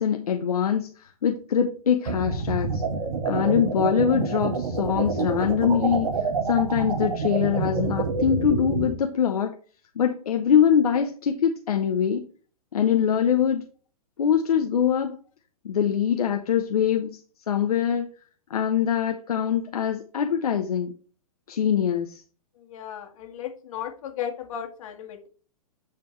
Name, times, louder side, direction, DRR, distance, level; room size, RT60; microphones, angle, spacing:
voice 1, 0.0-2.8 3.2-9.5 10.0-12.3 12.7-13.7 14.2-15.2 15.6-17.2 17.5-18.1 18.5-20.9 21.5-22.2, left 8 dB, 75° left, 6 dB, 0.8 m, -23 dB
sound 1, 2.1-8.9, right 4 dB, 65° right, 1.5 m, -27 dB
voice 2, 22.6-25.3, left 9 dB, 60° left, 4 dB, 1.9 m, -35 dB
9.6 x 3.5 x 4.4 m, 0.42 s
hypercardioid pair, 115°, 19 cm